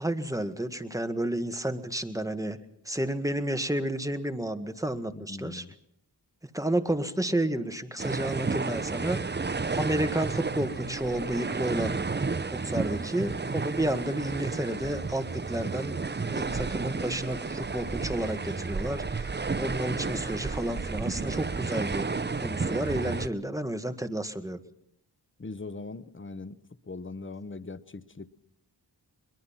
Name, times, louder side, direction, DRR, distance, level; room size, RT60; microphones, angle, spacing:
voice 1, 0.0-2.6 2.9-5.7 6.5-9.3 9.7-12.0 12.5-16.0 16.2-22.1 22.4-24.6, right 1 dB, 10° right, 9 dB, 1.7 m, -31 dB
voice 2, 5.1-5.7 25.4-26.5 26.9-28.3, left 3 dB, 30° left, 14 dB, 1.1 m, -40 dB
sound 1, 8.0-23.3, right 4 dB, 25° right, 0.7 m, -32 dB
22.5 x 22.0 x 5.8 m, 0.72 s
wide cardioid pair, 75°, 41 cm